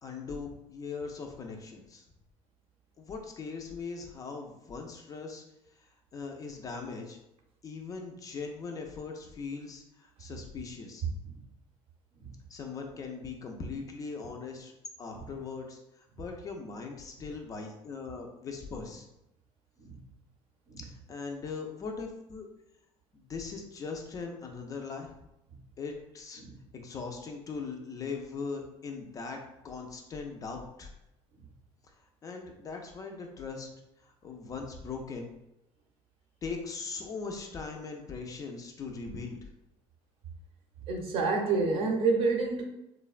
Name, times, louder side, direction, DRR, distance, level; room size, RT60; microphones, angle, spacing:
voice 1, 0.0-2.0 3.0-5.4 6.1-7.2 7.6-11.0 12.5-14.7 15.0-15.8 16.2-19.0 20.8-22.5 23.1-25.1 25.8-26.4 26.7-30.9 32.2-33.7 34.0-35.3 36.4-39.4, left 4 dB, 30° left, 2 dB, 0.3 m, -40 dB
voice 2, 11.0-11.4 12.2-12.4 15.1-15.3 19.8-20.0 20.7-20.9 25.5-25.6 26.4-26.6 40.9-42.6, right 4 dB, 50° right, 2 dB, 0.6 m, -29 dB
3.1 x 2.1 x 2.3 m, 0.87 s
cardioid pair, 140°, 12 cm